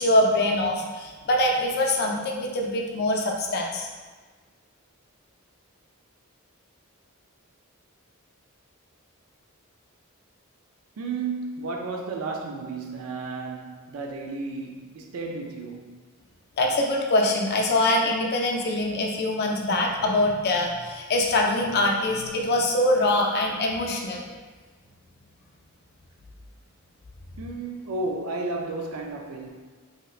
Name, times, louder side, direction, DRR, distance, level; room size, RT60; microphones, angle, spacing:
voice 1, 0.0-3.9 16.6-24.2, left 1 dB, 50° left, 0.4 m, -23 dB
voice 2, 11.0-16.0 27.4-29.5, right 3 dB, 85° right, 0.4 m, -33 dB
3.2 x 2.8 x 2.3 m
head